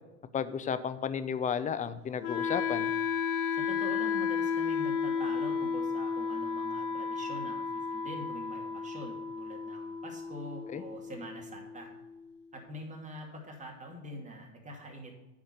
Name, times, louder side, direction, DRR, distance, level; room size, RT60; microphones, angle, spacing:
voice 1, 0.3-2.9 10.7-10.8, left 7 dB, 15° left, 12 dB, 0.5 m, -33 dB
Wind instrument woodwind instrument, 2.2-12.2, left 6 dB, 65° left, 1.4 m, -33 dB
voice 2, 3.5-11.9 12.5-15.1, right 1 dB, 15° right, 0 dB, 2.5 m, -45 dB
8.7 x 5.1 x 7.2 m, 1.1 s
hypercardioid pair, 90°, 48 cm